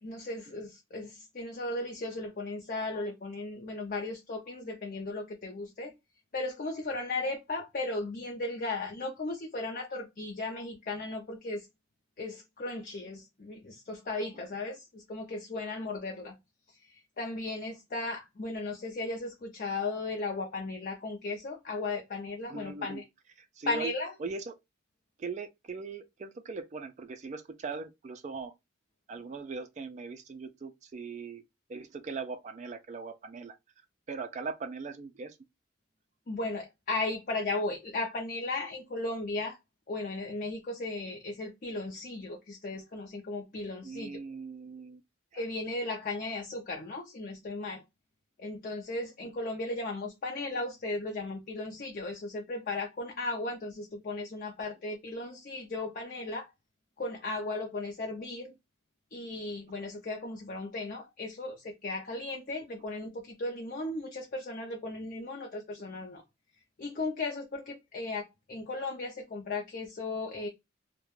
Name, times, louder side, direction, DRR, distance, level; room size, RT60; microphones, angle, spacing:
voice 1, 0.0-5.9 6.3-11.7 12.2-16.4 16.8-23.0 23.7-24.1 36.3-39.6 39.9-44.2 45.3-47.8 48.4-56.5 57.0-58.5 59.1-66.2 66.8-70.5, left 2 dB, 45° left, 0.5 m, -36 dB
voice 2, 22.5-23.0 23.4-23.9 24.2-24.5 25.2-28.5 29.1-31.4 31.7-33.6 34.1-35.4 43.8-45.0 45.3-45.4, right 4 dB, 35° right, 0.3 m, -40 dB
2.3 x 2.1 x 3.0 m
head